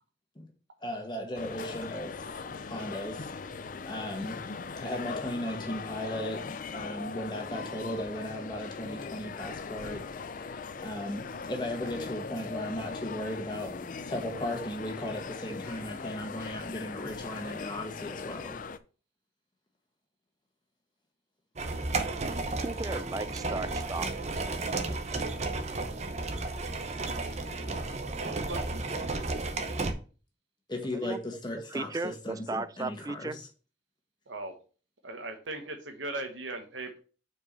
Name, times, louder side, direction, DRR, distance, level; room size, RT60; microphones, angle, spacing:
voice 1, 0.8-3.3 3.8-4.4 4.8-10.1 10.3-13.7 14.1-18.6 30.7-33.5, left 1 dB, 25° left, 1.5 m, -37 dB
sound 1, 1.3-18.8, left 4 dB, 45° left, 0.4 m, -40 dB
voice 2, 14.0-14.5 15.8-16.0 28.2-28.8 34.3-34.5 35.0-37.0, right 2 dB, 85° right, 1.2 m, -39 dB
sound 2, 21.6-29.9, right 3 dB, 35° right, 0.8 m, -33 dB
voice 3, 22.6-24.1 30.9-31.2 31.7-33.5, right 3 dB, 20° right, 0.3 m, -35 dB
5.5 x 4.8 x 5.4 m
head